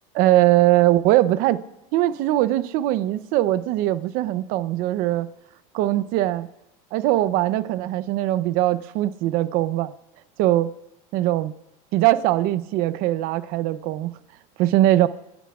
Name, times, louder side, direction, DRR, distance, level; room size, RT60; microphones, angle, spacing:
voice 1, 0.1-1.6 1.9-5.3 5.7-6.5 6.9-9.9 10.4-10.7 11.1-11.5 11.9-14.1 14.6-15.1, right 15 dB, 60° right, 0.7 m, -21 dB
29.5 x 16.5 x 2.4 m
supercardioid pair, 135°, 17 cm